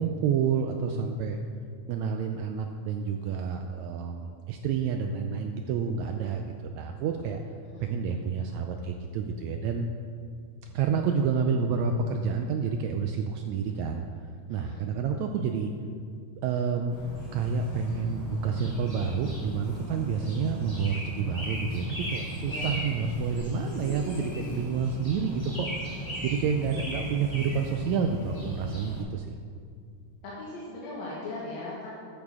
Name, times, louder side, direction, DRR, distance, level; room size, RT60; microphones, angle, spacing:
voice 1, 0.0-1.4 1.9-7.4 7.8-9.9 10.7-14.0 14.5-15.7 16.4-17.0 17.3-29.4, right 6 dB, 80° right, 4 dB, 1.7 m, -29 dB
voice 2, 14.5-14.8 20.1-20.3 22.4-22.7 26.0-26.2 30.2-31.9, left 2 dB, 65° left, -7 dB, 2.6 m, -40 dB
sound 1, 16.9-29.0, equal, 10° left, 2.2 m, -37 dB
sound 2, 23.5-24.8 25.3-25.4 25.6-25.7 26.8-27.7 28.4-28.6, left 2 dB, 85° left, 1.1 m, -43 dB
13.0 x 9.0 x 3.6 m, 2.3 s
omnidirectional pair, 3.7 m